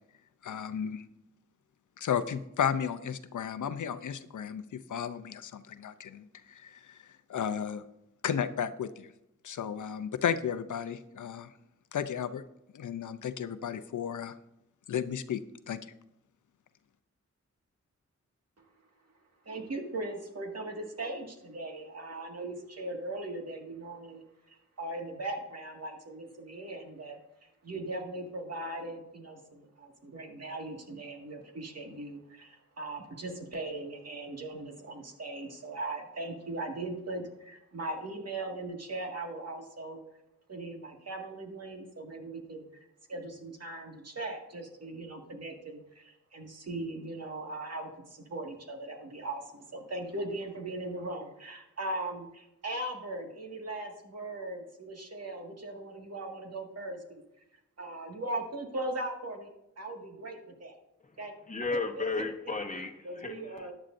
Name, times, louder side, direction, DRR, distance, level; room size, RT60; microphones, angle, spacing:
voice 1, 0.4-1.0 2.0-7.8 8.2-9.1 9.4-11.5 11.9-12.4 12.7-14.4 14.9-15.9, left 8 dB, 85° left, 12 dB, 0.6 m, -34 dB
voice 2, 19.4-27.2 27.6-40.0 40.5-42.7 43.1-57.2 57.8-60.7 61.2-61.3 61.9-62.1 63.0-63.7, right 2 dB, 55° right, 2 dB, 2.0 m, -39 dB
voice 3, 61.5-63.7, left 3 dB, 25° left, 4 dB, 1.1 m, -34 dB
14.0 x 10.0 x 2.6 m, 0.86 s
wide cardioid pair, 85°, 30 cm